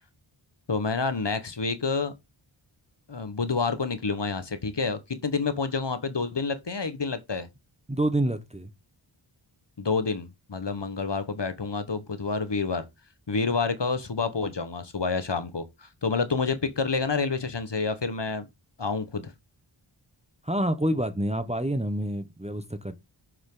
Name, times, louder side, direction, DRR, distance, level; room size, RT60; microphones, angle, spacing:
voice 1, 0.7-2.1 3.1-7.5 9.8-12.8 13.3-18.5 18.8-19.3, left 4 dB, 55° left, 1.3 m, -28 dB
voice 2, 7.9-8.7 20.4-22.9, right 1 dB, 15° right, 1.1 m, -27 dB
7.0 x 6.4 x 3.9 m
wide cardioid pair, 45°, 50 cm